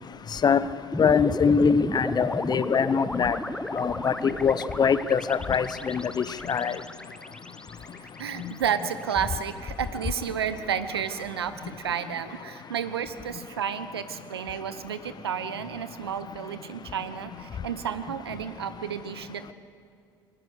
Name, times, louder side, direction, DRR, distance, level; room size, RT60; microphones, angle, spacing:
sound 1, 0.9-9.2, left 1 dB, 5° left, 0.9 m, -34 dB
voice 1, 1.0-3.4 3.7-6.8 8.4-8.5, left 6 dB, 35° left, 15 dB, 0.9 m, -23 dB
voice 2, 8.0-19.5, right 8 dB, 85° right, 12 dB, 0.9 m, -31 dB
22.0 x 19.0 x 6.6 m, 2.5 s
hypercardioid pair, 60°, 13 cm